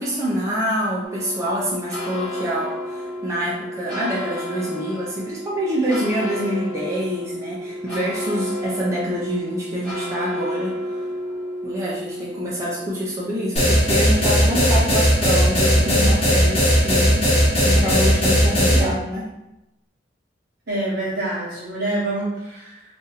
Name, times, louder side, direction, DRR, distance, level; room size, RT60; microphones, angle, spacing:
voice 1, 0.0-10.7 11.6-17.3 17.6-19.2, equal, 15° right, -7 dB, 0.5 m, -26 dB
sound 1, 1.0-18.6, equal, 5° left, 1.2 m, -32 dB
sound 2, 13.6-18.8, equal, 35° left, 0.8 m, -17 dB
voice 2, 20.7-22.8, right 2 dB, 60° right, -8 dB, 0.9 m, -26 dB
2.6 x 2.5 x 4.0 m, 0.92 s
head